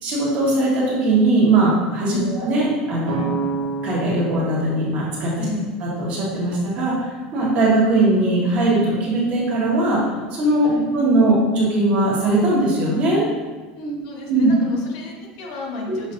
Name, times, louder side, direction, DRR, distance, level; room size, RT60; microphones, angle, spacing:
voice 1, 0.0-3.4 3.8-5.3 5.8-10.0 10.3-13.2 14.3-14.5 15.9-16.0, right 2 dB, 45° right, -5 dB, 1.5 m, -19 dB
sound 1, 3.0-6.9, right 4 dB, 60° right, 0.8 m, -31 dB
voice 2, 5.4-5.7 10.6-10.8 13.8-16.1, left 2 dB, 65° left, -1 dB, 1.1 m, -32 dB
6.4 x 3.0 x 2.6 m, 1.3 s
supercardioid pair, 150°, 3 cm